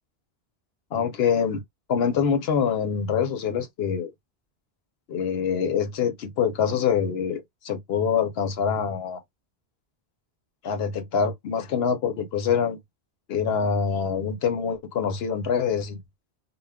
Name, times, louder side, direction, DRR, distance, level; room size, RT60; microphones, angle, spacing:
voice 1, 0.9-1.6 1.9-4.1 5.1-9.2 10.6-12.8 13.3-16.0, left 7 dB, 75° left, 0.9 m, -25 dB
2.2 x 2.1 x 3.5 m
omnidirectional pair, 1.1 m